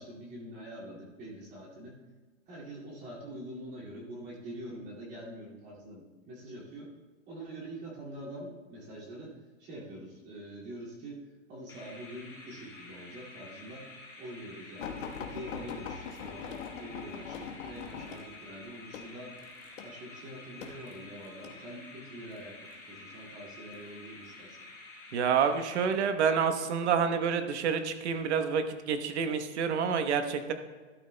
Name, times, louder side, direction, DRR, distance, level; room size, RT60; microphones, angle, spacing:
voice 1, 0.0-2.0 2.5-6.9 7.3-19.4 19.8-24.7, right 1 dB, 25° right, -6 dB, 2.3 m, -45 dB
sound 1, 11.7-26.3, left 2 dB, 10° left, 2.7 m, -50 dB
sound 2, 14.8-21.6 22.4-22.8 23.7-24.4 25.1-25.3 25.7-25.8, left 7 dB, 75° left, 1.3 m, -42 dB
voice 2, 25.1-30.5, right 6 dB, 60° right, 8 dB, 1.1 m, -28 dB
12.5 x 12.5 x 2.2 m, 1.3 s
hypercardioid pair, 160°, 38 cm